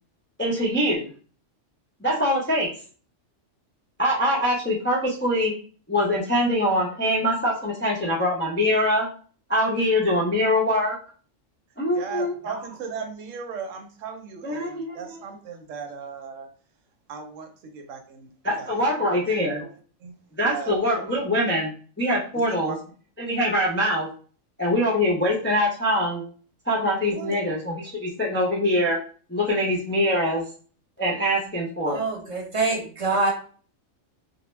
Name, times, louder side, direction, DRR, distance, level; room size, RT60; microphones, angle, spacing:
voice 1, 0.4-1.1 2.0-2.7 4.0-5.5 5.9-9.1 9.5-10.9 11.8-12.3 14.4-15.0 18.4-19.6 20.4-21.7 22.0-22.7 23.2-24.1 24.6-26.2 26.7-29.0 29.3-30.4 31.0-32.0, equal, 20° left, -4 dB, 0.3 m, -23 dB
voice 2, 11.9-16.5 17.1-18.3 18.6-18.7 19.5-19.7 20.0-20.1 20.4-20.8 22.3-22.8 27.1-27.4, right 5 dB, 90° right, 5 dB, 1.0 m, -37 dB
voice 3, 31.9-33.3, right 3 dB, 30° right, -2 dB, 0.8 m, -25 dB
2.3 x 2.1 x 3.1 m, 0.42 s
omnidirectional pair, 1.3 m